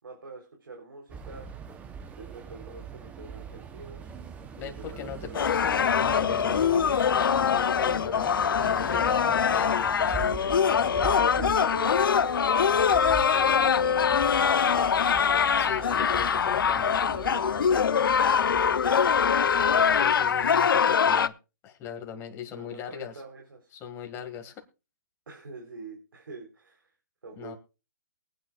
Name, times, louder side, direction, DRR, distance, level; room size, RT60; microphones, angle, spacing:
voice 1, 0.0-1.5 2.1-4.1 4.6-5.5 11.0-14.8 16.8-18.2 22.5-23.7 25.3-26.9 27.2-27.6, right 3 dB, 85° right, 2 dB, 3.7 m, -44 dB
sound 1, 1.1-20.6, right 6 dB, 10° right, 0.8 m, -42 dB
voice 2, 4.5-10.4 15.6-16.9 19.5-21.3 21.6-23.2 23.7-24.5 27.4-27.6, left 9 dB, 20° left, 4 dB, 1.9 m, -38 dB
sound 2, 5.3-21.3, left 7 dB, 80° left, 0.7 m, -23 dB
23.0 x 9.2 x 2.4 m, 0.30 s
hypercardioid pair, 150°, 11 cm